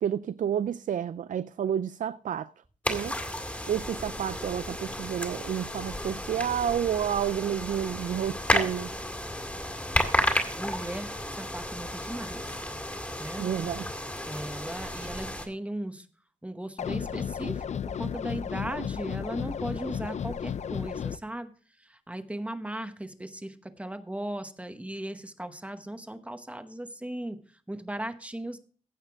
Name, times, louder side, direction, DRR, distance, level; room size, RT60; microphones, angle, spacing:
voice 1, 0.0-2.5 2.9-3.2 3.7-8.9 13.4-14.0, right 9 dB, 85° right, 0.4 m, -30 dB
sound 1, 2.8-15.5, left 1 dB, 10° left, 2.0 m, -32 dB
voice 2, 10.6-12.6 13.2-13.5 14.3-16.1 16.4-17.6 18.0-21.5 21.8-27.4 27.7-28.6, right 1 dB, 10° right, 1.0 m, -37 dB
sound 2, 16.8-21.2, left 8 dB, 60° left, 0.4 m, -33 dB
15.5 x 6.6 x 3.6 m
wide cardioid pair, 135°, 13 cm